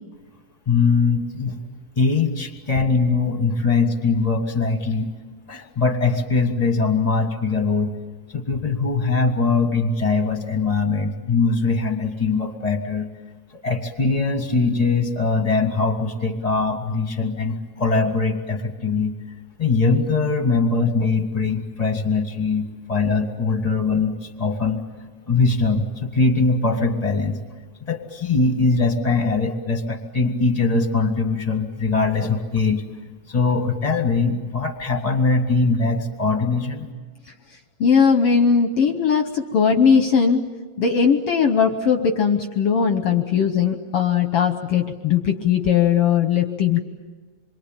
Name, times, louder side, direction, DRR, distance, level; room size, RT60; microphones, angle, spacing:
voice 1, 0.7-1.6 2.0-5.1 5.5-7.9 8.3-13.1 13.6-19.1 19.6-24.8 25.3-27.4 27.8-32.8 33.3-36.9, left 4 dB, 20° left, 6 dB, 1.0 m, -21 dB
voice 2, 37.8-40.4 40.8-46.8, left 6 dB, 65° left, 7 dB, 1.5 m, -19 dB
27.0 x 23.5 x 8.9 m, 1.3 s
omnidirectional pair, 3.6 m